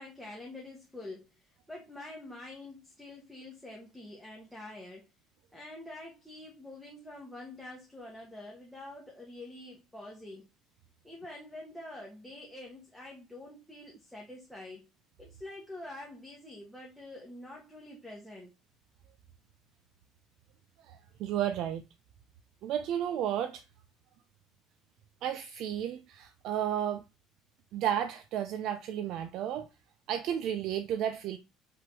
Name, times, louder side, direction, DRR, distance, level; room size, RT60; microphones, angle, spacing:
voice 1, 0.0-5.1 5.5-10.5 11.0-14.9 15.2-18.5, left 2 dB, ahead, 1.4 m, -46 dB
voice 2, 20.8-21.8 22.6-23.6 25.2-27.0 27.7-29.7 30.1-31.4, right 10 dB, 45° right, 0.6 m, -32 dB
5.8 x 3.7 x 6.0 m
cardioid pair, 180°, 0 cm